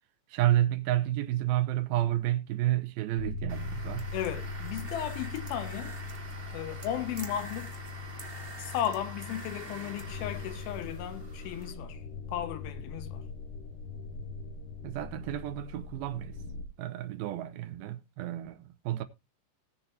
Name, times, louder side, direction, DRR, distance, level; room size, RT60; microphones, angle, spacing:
voice 1, 0.3-4.1 14.8-16.4 16.8-19.0, right 14 dB, 85° right, 2.6 m, -30 dB
sound 1, 3.2-16.6, left 4 dB, 45° left, 2.8 m, -41 dB
sound 2, 3.5-11.7, right 3 dB, 55° right, 0.6 m, -46 dB
voice 2, 4.1-6.0 6.5-7.7 8.6-12.0 12.3-13.2, left 11 dB, 80° left, 2.8 m, -35 dB
19.0 x 6.8 x 2.8 m
omnidirectional pair, 4.3 m